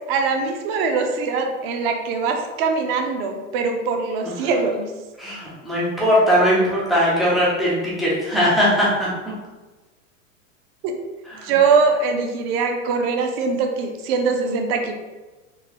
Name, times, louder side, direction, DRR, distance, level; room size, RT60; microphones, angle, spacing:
voice 1, 0.1-4.9 10.8-10.9 11.4-14.9, right 4 dB, 50° right, 4 dB, 0.6 m, -22 dB
voice 2, 5.2-9.1, equal, ahead, -8 dB, 0.3 m, -19 dB
3.8 x 2.4 x 2.9 m, 1.2 s
supercardioid pair, 140°, 39 cm